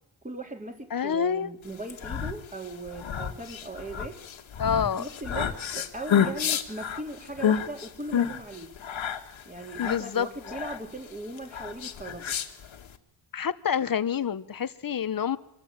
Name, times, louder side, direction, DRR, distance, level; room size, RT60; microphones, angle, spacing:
voice 1, 0.2-4.2 5.0-8.7 9.5-12.4, right 2 dB, 15° right, 4 dB, 3.8 m, -39 dB
voice 2, 0.9-1.5 4.6-5.0 9.8-10.3 13.3-15.4, left 7 dB, 45° left, 14 dB, 1.1 m, -27 dB
sound 1, 1.8-13.0, left 8 dB, 80° left, 2.3 m, -30 dB
25.5 x 22.0 x 8.9 m, 0.83 s
wide cardioid pair, 115°, 47 cm